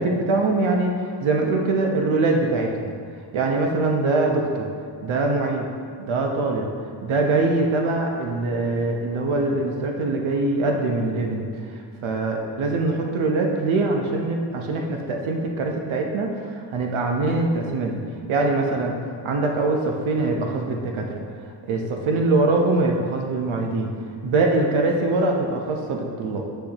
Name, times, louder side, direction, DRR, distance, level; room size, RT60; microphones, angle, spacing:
voice 1, 0.0-2.9 3.3-4.7 5.0-5.7 6.0-6.7 7.0-11.4 11.7-18.0 18.3-19.0 19.2-21.2 21.7-23.9 24.2-26.4, right 2 dB, 85° right, 1 dB, 1.0 m, -23 dB
10.0 x 6.4 x 2.9 m, 2.2 s
cardioid pair, 120°, 47 cm